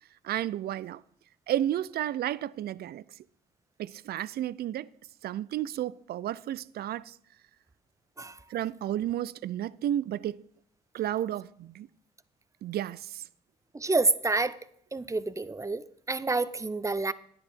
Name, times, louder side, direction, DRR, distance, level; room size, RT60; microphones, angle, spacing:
voice 1, 0.2-1.0 1.5-3.0 3.8-4.9 5.2-7.1 8.5-10.4 10.9-11.9 12.6-13.2, right 12 dB, 60° right, 0.4 m, -32 dB
voice 2, 13.7-14.6 14.9-15.8 16.1-17.1, right 3 dB, 15° right, 0.6 m, -28 dB
10.0 x 9.8 x 4.3 m
supercardioid pair, 55°, 18 cm